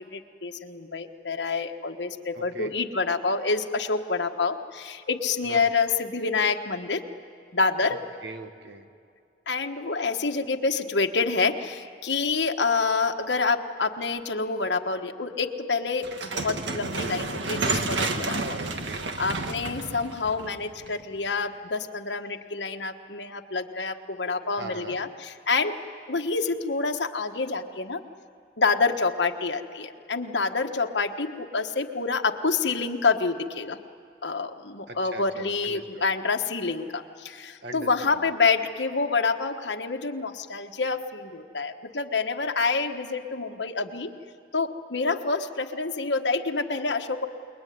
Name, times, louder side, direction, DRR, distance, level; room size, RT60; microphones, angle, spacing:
voice 1, 0.0-7.0 7.5-8.0 9.5-18.4 19.2-25.7 26.1-28.0 28.6-33.8 34.2-44.1 44.5-47.3, left 4 dB, 70° left, 4 dB, 1.4 m, -27 dB
voice 2, 2.3-2.7 5.4-5.7 7.9-8.9 18.1-19.0 24.6-25.0 34.9-36.1 37.6-38.3, right 2 dB, 70° right, 7 dB, 1.7 m, -40 dB
sound 1, 16.0-21.2, right 3 dB, 90° right, 1.7 m, -30 dB
28.0 x 22.0 x 9.5 m, 2.3 s
head